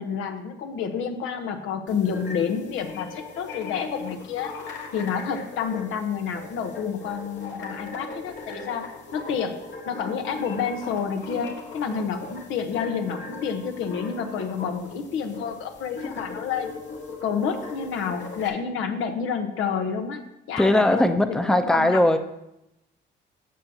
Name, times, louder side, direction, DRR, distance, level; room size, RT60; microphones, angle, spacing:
voice 1, 0.0-4.5 4.9-8.8 9.1-9.6 9.9-16.7 17.2-20.2 20.5-22.0, left 6 dB, 85° left, 6 dB, 1.0 m, -29 dB
sound 1, 1.9-18.5, left 4 dB, 70° left, 1.7 m, -39 dB
voice 2, 20.6-22.2, left 1 dB, 5° left, 7 dB, 0.6 m, -19 dB
15.0 x 5.6 x 2.8 m, 0.86 s
cardioid pair, 90°, 20 cm